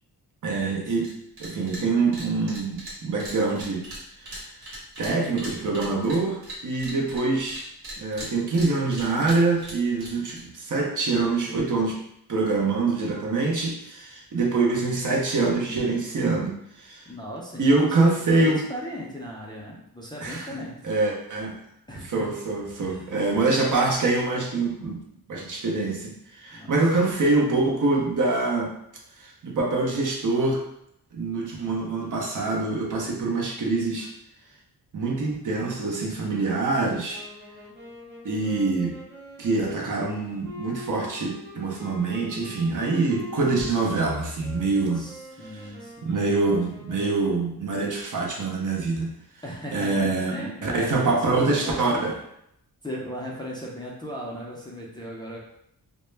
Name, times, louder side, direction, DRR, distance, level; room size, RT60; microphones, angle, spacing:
voice 1, 0.4-1.1 1.4-3.8 4.2-4.5 5.0-7.7 8.0-12.0 12.3-17.1 17.6-18.6 20.2-20.5 20.8-21.5 22.1-25.0 25.3-28.7 29.2-30.6 31.1-34.1 34.9-37.2 38.2-38.9 39.4-45.0 45.4-45.7 46.0-49.1 49.7-52.2, right 3 dB, 50° right, -1 dB, 0.6 m, -25 dB
sound 1, 1.0-1.1 1.4-1.8 2.1-7.6 7.8-10.4, right 1 dB, 85° right, 1.1 m, -39 dB
voice 2, 17.1-20.8 21.9-22.3 22.8-23.1 26.5-26.8 44.9-46.1 49.4-51.8 52.8-55.4, equal, 10° left, -5 dB, 0.4 m, -37 dB
sound 2, 37.1-47.4, left 1 dB, 30° right, 0.9 m, -44 dB
2.1 x 2.0 x 3.2 m, 0.75 s
wide cardioid pair, 105°, 38 cm